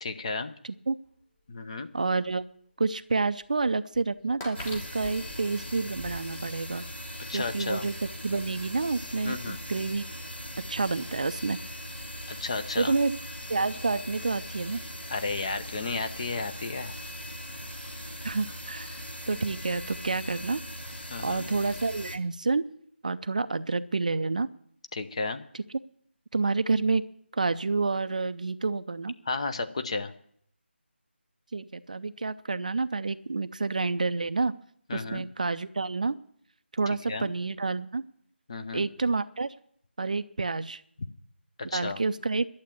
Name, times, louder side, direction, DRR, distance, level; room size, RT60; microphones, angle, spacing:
voice 1, 0.0-0.5 1.5-1.9 7.3-7.9 9.2-9.6 12.3-12.9 15.1-16.9 21.1-21.5 24.9-25.4 29.3-30.1 34.9-35.2 37.1-37.3 38.5-38.9 41.6-42.0, left 3 dB, 30° left, 8 dB, 0.7 m, -33 dB
voice 2, 0.6-1.0 1.9-2.4 2.8-6.8 7.3-8.0 8.2-10.0 10.6-11.6 12.8-13.2 13.5-14.8 18.2-20.6 21.2-22.6 23.0-24.5 25.5-25.6 26.3-27.0 27.3-29.1 31.5-34.5 34.9-36.2 36.7-38.0 38.7-39.5 40.0-40.8 41.7-42.5, right 3 dB, 40° right, 12 dB, 0.5 m, -29 dB
sound 1, 1.1-1.2 2.0-2.1 2.3-2.4 3.4-3.5 3.9-6.2, left 2 dB, 10° left, 1.1 m, -43 dB
sound 2, 4.5-22.2, equal, 75° left, 2.5 m, -40 dB
11.5 x 7.4 x 9.7 m, 0.66 s
figure-of-eight pair, 160°, 6 cm